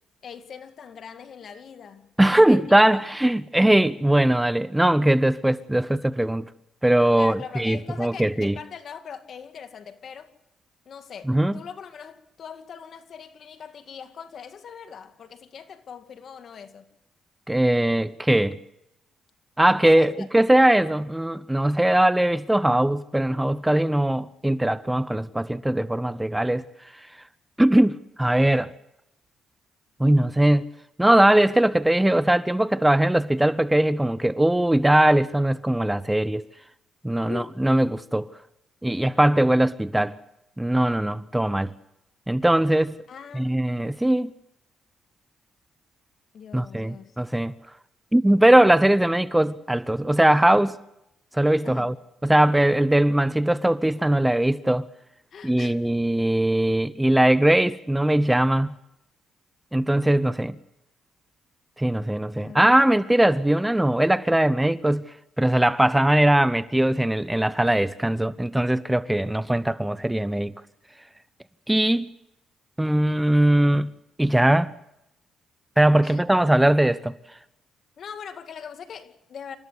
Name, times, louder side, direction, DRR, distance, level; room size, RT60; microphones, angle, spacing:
voice 1, 0.2-3.0 7.2-10.3 10.9-16.9 19.7-20.3 37.2-37.6 43.1-43.7 46.3-47.1 51.6-51.9 55.3-55.8 62.4-62.8 76.0-76.2 78.0-79.6, left 7 dB, 55° left, 2.3 m, -41 dB
voice 2, 2.2-6.5 6.8-8.6 11.3-11.6 17.5-18.6 19.6-26.6 26.9-27.1 27.6-28.7 30.0-30.7 31.0-36.5 37.0-38.3 38.8-40.2 40.6-41.7 42.3-43.0 43.3-44.3 46.5-47.5 48.1-50.8 51.3-52.0 52.2-54.9 55.4-58.7 59.7-60.6 61.8-70.5 71.7-72.1 72.8-73.9 74.2-74.7 75.8-77.2, right 1 dB, 10° right, 0.7 m, -20 dB
28.0 x 14.0 x 8.2 m
cardioid pair, 90°, 0 cm